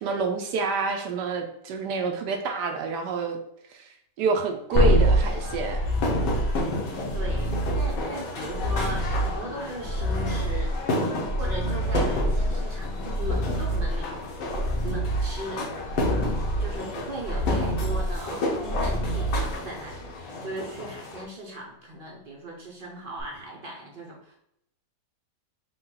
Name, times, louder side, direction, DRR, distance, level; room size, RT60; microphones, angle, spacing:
voice 1, 0.0-3.4 3.7-3.8 4.2-5.8, right 4 dB, 75° right, 4 dB, 1.2 m, -28 dB
sound 1, 4.7-21.2, left 2 dB, 80° left, 1.6 m, -32 dB
sound 2, 4.7-20.0 23.2-23.3, right 1 dB, 50° left, 0.7 m, -26 dB
voice 2, 7.1-10.7 11.4-14.3 14.8-15.7 16.6-24.4, right 1 dB, 50° right, -2 dB, 0.6 m, -38 dB
5.4 x 2.3 x 3.8 m, 0.76 s
omnidirectional pair, 1.9 m